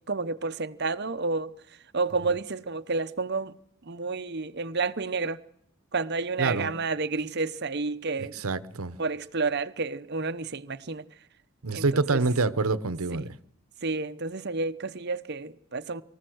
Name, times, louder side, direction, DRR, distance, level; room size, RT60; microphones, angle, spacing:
voice 1, 0.0-1.5 1.9-3.5 3.9-5.4 5.9-8.4 9.0-11.0 11.7-12.2 13.1-13.3 13.8-16.0, right 3 dB, 50° right, 0.8 m, -30 dB
voice 2, 6.4-6.7 8.4-8.9 11.6-13.3, right 3 dB, 75° right, 1.0 m, -26 dB
24.0 x 15.0 x 7.8 m
head